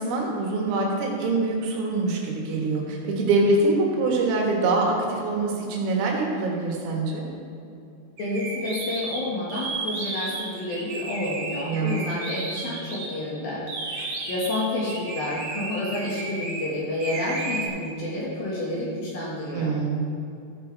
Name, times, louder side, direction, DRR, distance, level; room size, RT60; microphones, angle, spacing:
voice 1, 0.0-7.2 11.6-12.0 19.5-20.0, right 3 dB, 80° right, -1 dB, 4.1 m, -24 dB
voice 2, 8.2-14.0 14.3-19.7, left 1 dB, 60° left, -5 dB, 2.9 m, -29 dB
sound 1, 8.2-13.1 13.7-16.6 17.0-17.7, right 3 dB, 65° right, 1.5 m, -33 dB
14.0 x 10.5 x 3.4 m, 2.6 s
omnidirectional pair, 5.8 m